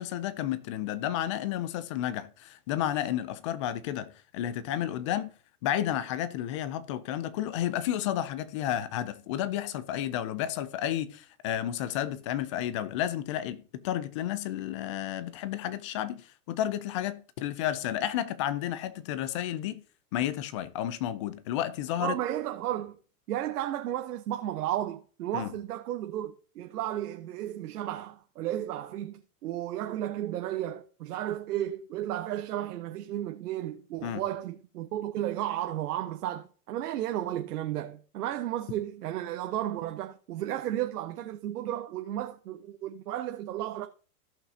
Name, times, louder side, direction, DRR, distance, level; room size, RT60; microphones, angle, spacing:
voice 1, 0.0-5.3 5.6-19.8 20.1-22.2 25.3-25.5 34.0-34.2, left 11 dB, 25° left, 0.3 m, -32 dB
voice 2, 22.0-23.0 23.3-43.9, right 12 dB, 75° right, 1.0 m, -33 dB
17.0 x 5.7 x 2.7 m
hypercardioid pair, 140°, 47 cm